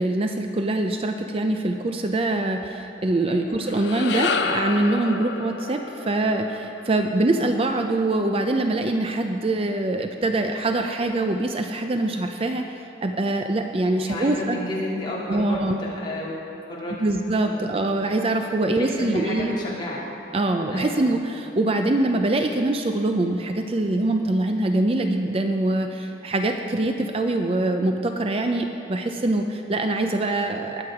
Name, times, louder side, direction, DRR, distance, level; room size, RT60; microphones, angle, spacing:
voice 1, 0.0-14.6 15.3-15.8 17.0-19.6 20.3-30.8, right 2 dB, 35° right, 5 dB, 0.5 m, -24 dB
sound 1, 3.5-8.0, left 4 dB, 75° left, 0.6 m, -30 dB
voice 2, 13.9-16.3 16.7-17.0 17.4-17.7 18.7-20.0 20.7-21.1, left 1 dB, 25° left, -6 dB, 2.9 m, -31 dB
20.0 x 8.0 x 4.8 m, 2.8 s
head